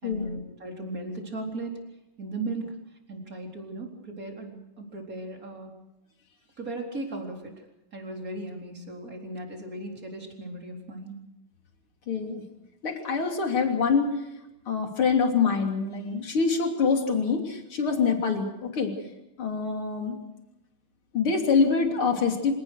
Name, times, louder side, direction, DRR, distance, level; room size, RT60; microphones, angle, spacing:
voice 1, 0.0-1.7 2.2-2.7 3.1-5.7 6.6-7.6 7.9-11.2, right 2 dB, 40° right, 1 dB, 4.5 m, -37 dB
voice 2, 12.1-12.4 12.8-14.1 14.7-18.9 19.4-20.2 21.1-22.5, left 5 dB, 75° left, 3 dB, 3.9 m, -25 dB
26.5 x 18.5 x 6.6 m, 0.92 s
omnidirectional pair, 2.4 m